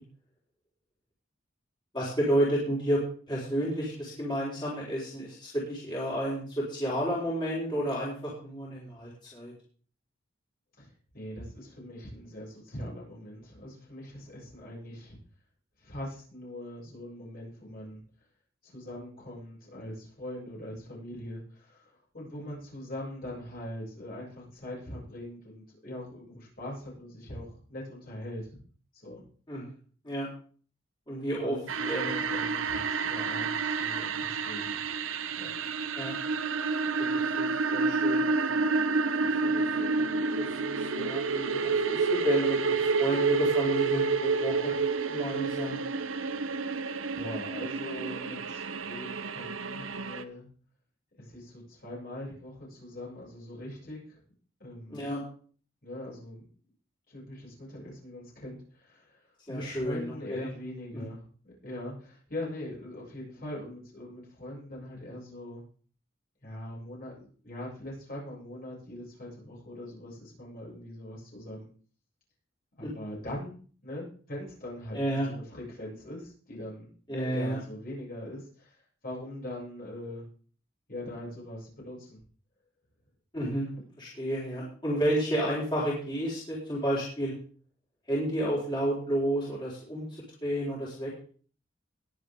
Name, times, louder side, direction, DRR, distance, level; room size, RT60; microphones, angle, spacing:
voice 1, 1.9-3.0 3.3-9.5 29.5-29.7 30.0-30.3 31.1-31.6 31.9-32.2 35.9-36.2 37.0-38.5 39.4-40.0 40.4-44.7 45.1-45.8 54.9-55.2 59.5-60.5 74.9-75.3 77.1-77.6 83.3-83.7 84.0-87.3 88.1-90.0 90.4-91.2, right 1 dB, 25° left, -7 dB, 4.7 m, -31 dB
voice 2, 10.8-15.2 15.8-18.0 18.6-28.5 28.9-29.2 31.4-34.8 35.4-35.5 46.7-46.8 47.1-50.5 51.2-54.2 54.6-55.1 55.8-56.5 57.1-65.6 66.4-71.7 72.8-78.8 79.0-80.2 80.9-82.2, left 1 dB, 50° left, -4 dB, 7.2 m, -42 dB
sound 1, 31.7-50.2, right 4 dB, 90° right, 0.9 m, -29 dB
21.5 x 7.7 x 3.8 m, 0.44 s
head